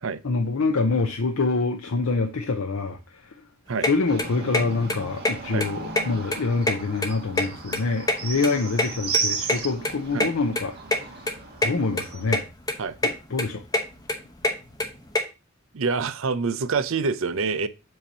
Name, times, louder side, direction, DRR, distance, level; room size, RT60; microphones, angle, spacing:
voice 1, 0.2-3.4 3.9-10.8 11.1-11.2 11.6-12.4 13.0-13.6, left 3 dB, 75° left, 0.7 m, -26 dB
sound 1, 3.8-3.9 4.2-4.6 4.9-5.0 5.2-5.3 5.6-6.4 6.6-7.8 8.1-9.6 9.8-9.9 10.2-10.3 10.6-10.7 10.9-11.0 11.3-11.7 12.0-12.4 12.7-13.1 13.4-15.2, left 2 dB, 20° left, 0.9 m, -24 dB
sound 2, 4.1-12.3, right 5 dB, 50° right, 1.7 m, -34 dB
voice 2, 15.7-17.7, right 4 dB, 65° right, 0.6 m, -26 dB
7.7 x 2.9 x 5.4 m
head